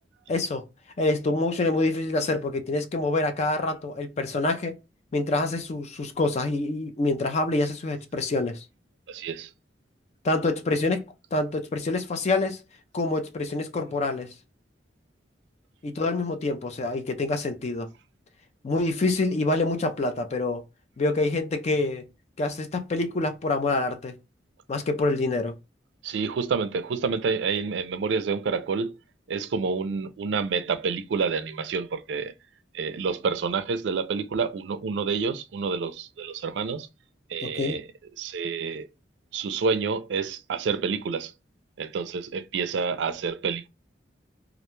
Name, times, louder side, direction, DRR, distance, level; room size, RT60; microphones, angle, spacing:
voice 1, 0.3-0.6 1.0-4.8 5.1-8.6 10.2-12.6 12.9-14.3 15.8-17.9 18.6-20.6 21.0-22.0 22.4-24.2 24.7-25.5 37.4-37.8, left 2 dB, 40° left, 0.4 m, -26 dB
voice 2, 9.1-9.5 26.0-28.9 29.3-32.3 32.7-36.9 37.3-37.8 38.2-38.9 39.3-41.3 41.8-43.7, right 5 dB, 75° right, 0.4 m, -28 dB
2.4 x 2.2 x 3.0 m
head